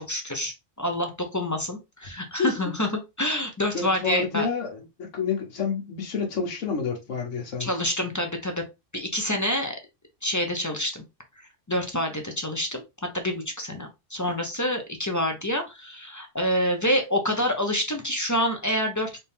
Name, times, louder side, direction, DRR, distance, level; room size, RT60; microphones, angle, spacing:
voice 1, 0.0-2.9 3.2-4.5 7.6-8.6 8.9-9.8 10.2-11.0 11.7-12.8 13.1-19.2, equal, 20° left, 0.5 m, -27 dB
voice 2, 3.7-7.7, left 5 dB, 75° left, 1.5 m, -29 dB
4.2 x 2.7 x 3.5 m
omnidirectional pair, 1.3 m